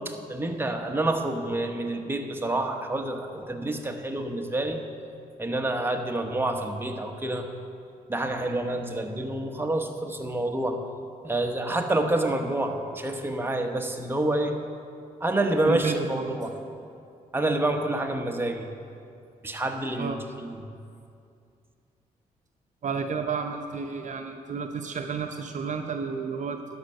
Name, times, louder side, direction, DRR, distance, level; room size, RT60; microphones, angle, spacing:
voice 1, 0.0-4.8 5.4-7.5 8.1-10.8 11.2-14.6 15.2-16.6 17.3-18.7 19.4-20.7, right 1 dB, 15° right, 4 dB, 1.1 m, -28 dB
voice 2, 15.6-16.4 20.0-20.2 22.8-26.6, right 5 dB, 55° right, 5 dB, 0.6 m, -31 dB
11.5 x 5.5 x 6.5 m, 2.4 s
supercardioid pair, 60°, 15 cm